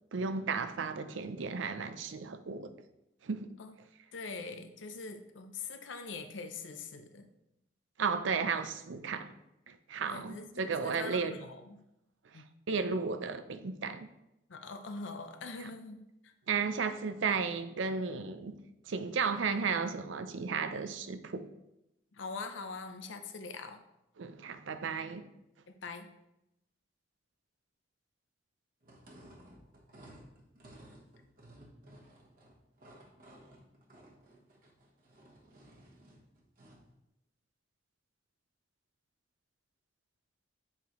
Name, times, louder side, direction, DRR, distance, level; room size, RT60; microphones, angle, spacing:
voice 1, 0.1-2.7 3.2-3.5 8.0-9.3 9.7-11.4 12.3-14.1 15.6-15.7 16.5-18.6 18.9-21.5 24.2-25.3, right 5 dB, 90° right, 0.5 m, -34 dB
voice 2, 4.1-7.3 10.1-10.5 10.8-11.8 12.3-12.5 14.5-16.3 22.1-23.8 25.7-26.1, left 4 dB, 90° left, 0.7 m, -43 dB
sound 1, 28.8-36.9, right 1 dB, 45° right, 1.2 m, -56 dB
7.3 x 4.9 x 3.1 m
head